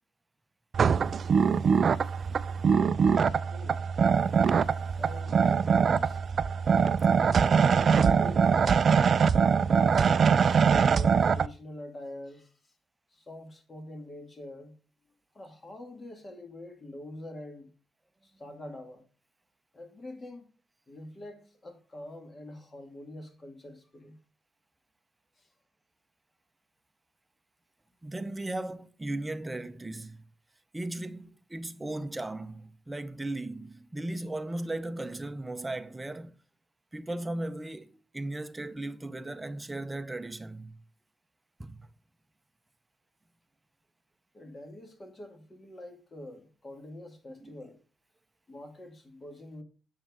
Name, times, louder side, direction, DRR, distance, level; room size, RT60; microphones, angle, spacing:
sound 1, 0.7-11.5, right 6 dB, 50° right, 0.3 m, -23 dB
voice 1, 3.0-3.8 5.0-6.2 7.2-8.9 9.7-12.7 13.1-14.8 15.3-17.7 18.2-19.1 19.7-20.5 20.9-24.2 25.4-25.5 44.3-47.8 48.5-49.6, left 1 dB, 30° left, 1.9 m, -45 dB
voice 2, 28.0-30.2 30.7-36.4 36.9-40.8 41.6-41.9 47.4-47.5, right 2 dB, 15° right, 0.7 m, -37 dB
7.3 x 6.6 x 3.6 m
cardioid pair, 90°, 0 cm